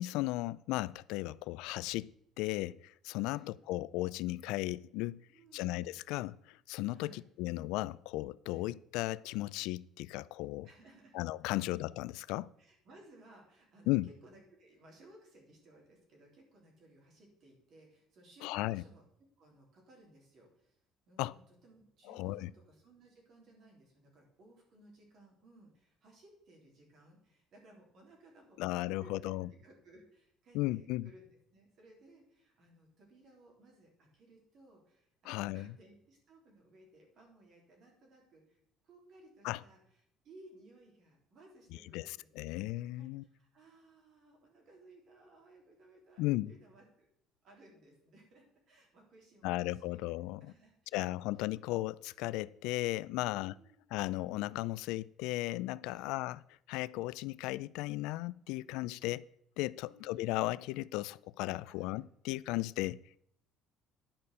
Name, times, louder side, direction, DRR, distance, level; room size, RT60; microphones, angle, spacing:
voice 1, 0.0-2.1 2.4-5.2 5.5-10.7 11.1-12.5 13.9-14.1 18.4-18.8 21.2-21.3 22.1-22.5 28.6-29.5 30.5-31.1 35.3-35.7 39.4-39.6 41.9-43.2 46.2-46.5 49.4-50.5 50.9-53.5 53.9-56.4 56.7-59.2 59.6-63.0, left 18 dB, 85° left, 0.3 m, -36 dB
voice 2, 3.2-3.5 5.3-5.7 6.9-7.2 8.5-8.7 10.6-11.1 11.4-11.7 12.6-19.0 19.4-20.8 21.1-31.3 31.5-42.6 42.9-47.1 47.4-50.0 50.4-51.1 53.2-53.8 55.9-56.2 58.6-59.1 59.8-60.2 61.6-62.0, right 1 dB, 40° right, 3.4 m, -60 dB
10.5 x 5.5 x 6.7 m
cardioid pair, 180°, 0 cm